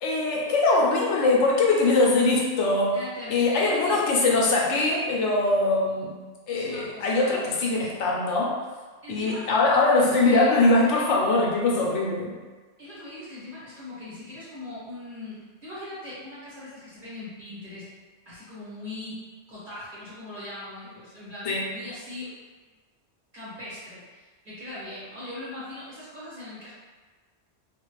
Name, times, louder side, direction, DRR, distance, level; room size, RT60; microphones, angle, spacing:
voice 1, 0.0-3.0 3.3-6.1 6.5-8.6 9.1-12.3 21.4-21.7, left 2 dB, 75° left, -2 dB, 0.9 m, -22 dB
voice 2, 2.9-4.0 6.5-7.5 9.0-9.5 10.0-10.6 12.8-17.9 18.2-19.2 19.5-22.3 23.3-26.7, left 1 dB, 45° right, -11 dB, 1.6 m, -40 dB
2.9 x 2.4 x 3.0 m, 1.4 s
omnidirectional pair, 1.2 m